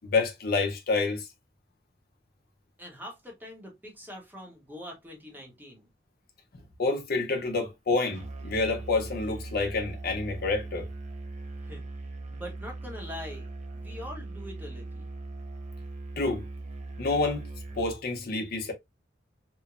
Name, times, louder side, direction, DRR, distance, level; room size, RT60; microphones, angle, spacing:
voice 1, 0.0-1.3 6.8-10.9 16.2-16.4 17.0-17.5 17.8-18.7, left 3 dB, 55° left, 0.6 m, -28 dB
voice 2, 2.8-5.9 11.6-11.8 12.3-13.5 13.7-15.1, left 1 dB, 10° right, 0.8 m, -43 dB
Musical instrument, 8.1-18.0, right 2 dB, 40° right, 0.4 m, -40 dB
3.0 x 2.0 x 2.3 m
head